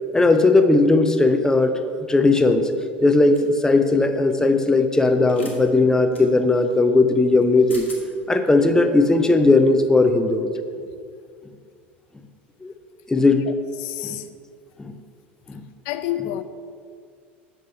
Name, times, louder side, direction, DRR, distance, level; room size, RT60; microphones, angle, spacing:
voice 1, 0.1-2.7 3.0-7.9 8.3-10.5 12.6-12.7 13.1-13.5 14.0-14.2 14.8-14.9 15.5-15.6, left 3 dB, 10° left, 0.7 m, -17 dB
sound 1, 3.3-3.6 5.2-5.6 6.1-6.2 7.4-7.5 7.7-8.0, left 3 dB, 80° left, 1.4 m, -40 dB
voice 2, 13.8-14.3 15.9-16.4, left 13 dB, 50° left, 0.5 m, -28 dB
8.3 x 6.1 x 5.5 m
figure-of-eight pair, 75°, 6 cm